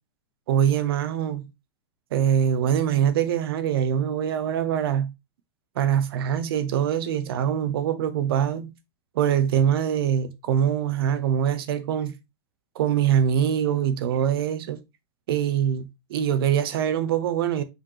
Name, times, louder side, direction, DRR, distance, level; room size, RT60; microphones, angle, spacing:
voice 1, 0.5-1.5 2.1-5.1 5.8-8.7 9.1-12.1 12.7-14.8 15.3-17.6, right 9 dB, 55° right, 0.8 m, -23 dB
6.2 x 5.2 x 2.9 m
supercardioid pair, 180°, 15 cm